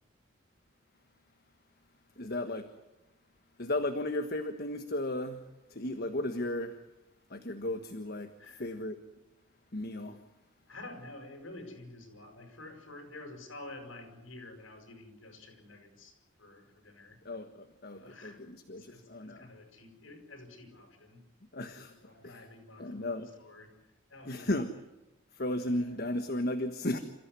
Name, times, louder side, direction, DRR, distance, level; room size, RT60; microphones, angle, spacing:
voice 1, 2.2-2.7 3.6-5.4 5.7-6.7 7.3-8.3 8.6-9.0 9.7-10.2 17.2-18.3 18.7-19.5 21.5-21.9 22.8-23.3 24.3-24.7 25.3-27.0, left 1 dB, 50° left, 7 dB, 1.5 m, -34 dB
voice 2, 8.4-8.8 10.7-17.2 17.9-18.4 18.7-21.2 21.8-23.1 23.4-23.7 24.1-24.6 25.5-25.9, left 2 dB, 75° left, 4 dB, 6.8 m, -50 dB
29.0 x 15.0 x 9.7 m, 0.95 s
head